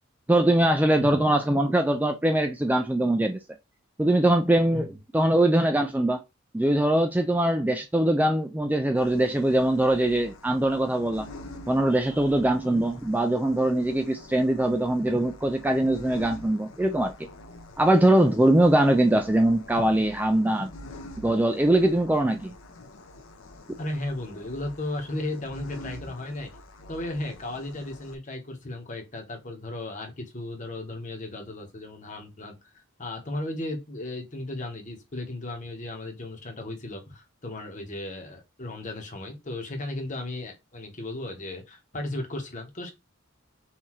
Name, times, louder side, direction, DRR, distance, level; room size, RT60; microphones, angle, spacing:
voice 1, 0.3-3.4 4.0-6.2 6.5-11.3 11.7-17.3 17.8-20.7 21.2-22.5, right 1 dB, 10° right, 0.3 m, -22 dB
sound 1, 9.0-28.2, left 1 dB, 85° left, 0.8 m, -46 dB
voice 2, 23.8-26.5 26.9-42.9, left 2 dB, 40° left, 1.2 m, -35 dB
5.7 x 2.7 x 3.1 m
head